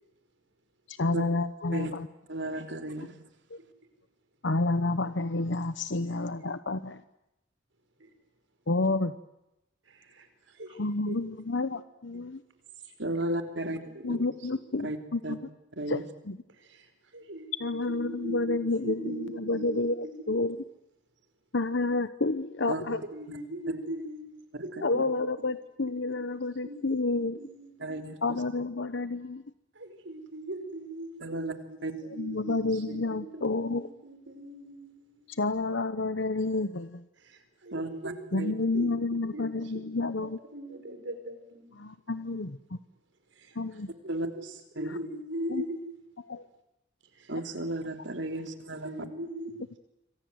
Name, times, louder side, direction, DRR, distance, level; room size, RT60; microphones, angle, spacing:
voice 1, 0.9-2.1 3.5-3.6 4.4-7.0 8.7-9.1 10.8-12.4 14.0-15.4 15.9-16.4 17.6-20.6 21.5-23.0 24.8-27.4 28.2-29.4 32.1-33.9 35.3-37.0 38.3-40.4 41.8-42.6 43.6-43.9 44.9-45.0 45.5-45.6 46.3-46.5, left 3 dB, 75° left, 12 dB, 1.0 m, -30 dB
voice 2, 2.3-3.1 13.0-13.8 14.8-15.0 15.2-15.3 15.8-16.0 22.7-22.8 24.5-24.6 24.9-25.0 27.8-28.2 31.2-31.5 31.8-31.9 37.7-38.5 44.1-44.3 44.8-45.0 47.3-48.9, right 1 dB, 70° right, 6 dB, 3.3 m, -34 dB
voice 3, 9.9-10.8 11.1-11.2 12.8-12.9 13.6-14.5 16.6-20.4 22.9-24.3 24.6-24.7 26.6-28.1 29.8-35.4 37.2-38.4 38.7-38.9 39.3-41.7 43.4-43.6 44.0-45.8 47.2-47.3 48.3-49.5, right 1 dB, 90° right, 7 dB, 5.6 m, -41 dB
27.5 x 25.0 x 8.0 m, 0.87 s
head